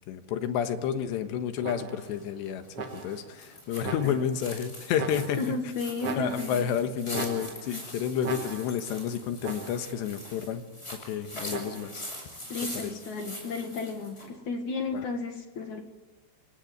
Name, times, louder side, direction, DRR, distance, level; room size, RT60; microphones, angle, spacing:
voice 1, 0.1-5.4 6.1-10.6 10.9-12.0 12.8-12.9 14.9-15.0, left 8 dB, 70° left, 8 dB, 3.4 m, -30 dB
sound 1, 1.6-2.2 2.8-3.3 3.8-4.5 5.0-5.6 6.0-6.8 7.1-7.8 8.2-8.9 9.4-10.0 11.5-12.1, right 5 dB, 45° right, 1.9 m, -39 dB
sound 2, 2.0-14.3, left 1 dB, 10° left, 6.6 m, -43 dB
voice 2, 5.3-6.7 12.5-15.8, left 3 dB, 55° left, 5 dB, 2.5 m, -33 dB
28.5 x 18.0 x 9.4 m, 1.2 s
omnidirectional pair, 5.4 m